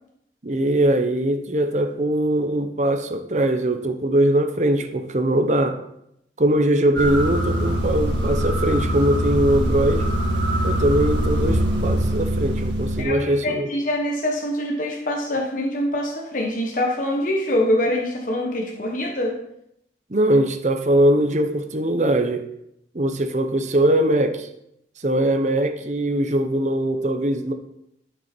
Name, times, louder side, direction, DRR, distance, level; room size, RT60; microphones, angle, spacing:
voice 1, 0.4-5.8 6.4-10.1 10.6-13.7 20.1-22.4 22.9-24.5 25.0-27.5, right 1 dB, 40° right, 7 dB, 0.8 m, -21 dB
sound 1, 6.9-13.0, equal, 90° right, 2.0 m, -23 dB
voice 2, 13.0-19.4, left 1 dB, 45° left, 0 dB, 1.2 m, -24 dB
11.5 x 6.6 x 4.4 m, 0.78 s
head